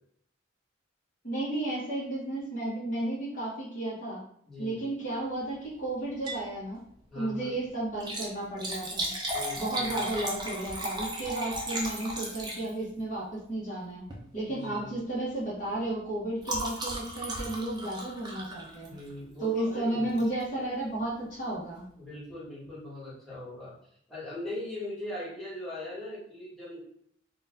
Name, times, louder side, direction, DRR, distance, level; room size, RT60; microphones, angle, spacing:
voice 1, 1.2-4.2 4.6-6.8 7.1-9.1 9.6-14.0 14.3-18.9 19.4-21.8, right 2 dB, 40° left, -6 dB, 1.1 m, -33 dB
voice 2, 4.5-4.9 7.1-7.6 9.3-10.2 14.4-15.0 18.9-20.2 22.0-23.7 24.1-26.8, left 1 dB, ahead, -8 dB, 1.5 m, -40 dB
Liquid, 6.1-6.5 6.9-7.0 7.9-13.0 14.0-14.3 14.6-14.9 15.2-19.2 20.2-20.4 21.0-21.1 21.3-21.4, right 1 dB, 20° right, 0.6 m, -35 dB
4.0 x 2.3 x 3.6 m, 0.67 s
head